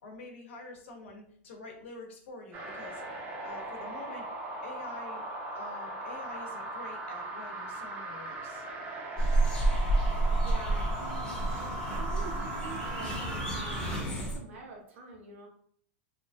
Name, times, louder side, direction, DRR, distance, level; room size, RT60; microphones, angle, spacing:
voice 1, 0.0-3.0 3.4-4.3 4.6-5.2 5.5-8.7, left 2 dB, 85° left, 1 dB, 0.8 m, -46 dB
sound 1, 2.5-14.0, right 2 dB, 30° right, 0.6 m, -39 dB
sound 2, 9.2-14.4, right 2 dB, 15° left, 0.7 m, -29 dB
voice 2, 9.9-15.5, right 3 dB, 80° right, 0 dB, 0.9 m, -47 dB
2.8 x 2.6 x 2.2 m, 0.63 s
supercardioid pair, 140°, 7 cm